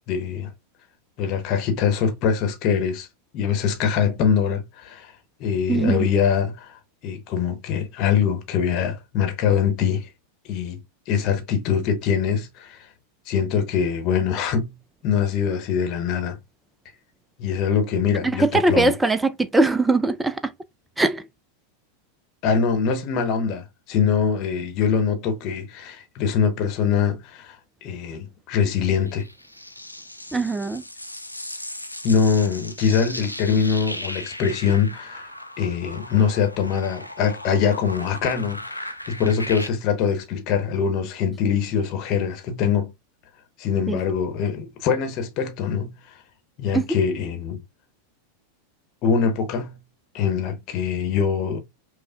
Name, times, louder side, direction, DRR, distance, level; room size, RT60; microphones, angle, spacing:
voice 1, 0.1-0.5 1.2-3.1 3.3-5.1 5.4-6.7 7.0-10.1 10.4-10.8 11.1-12.8 13.3-14.7 15.0-16.4 17.4-18.9 22.4-27.6 27.8-29.3 32.0-35.3 35.6-42.9 43.6-45.9 46.6-47.6 49.0-49.8 50.1-51.6, left 7 dB, 40° left, 0.9 m, -23 dB
voice 2, 5.7-6.1 18.2-20.5 21.0-21.3 30.3-30.8 43.9-44.0 46.7-47.0, right 2 dB, 10° right, 0.3 m, -21 dB
sound 1, 29.1-39.7, left 1 dB, 90° left, 0.4 m, -37 dB
5.3 x 2.1 x 2.3 m
figure-of-eight pair, 90°, 0 cm